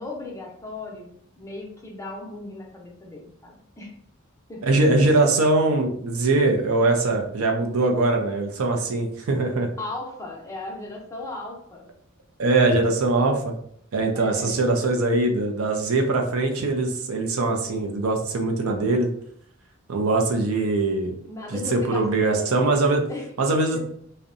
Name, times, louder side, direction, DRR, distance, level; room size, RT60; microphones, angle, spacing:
voice 1, 0.0-4.0 4.5-4.6 9.8-11.9 14.1-14.7 21.2-22.7 23.1-23.3 23.7-23.8, left 2 dB, 15° left, -1 dB, 0.5 m, -36 dB
voice 2, 4.6-9.7 12.4-13.5 13.9-19.1 19.9-21.1 21.5-23.0 23.4-23.8, right 2 dB, 80° right, 4 dB, 0.5 m, -22 dB
2.6 x 2.1 x 2.5 m, 0.68 s
head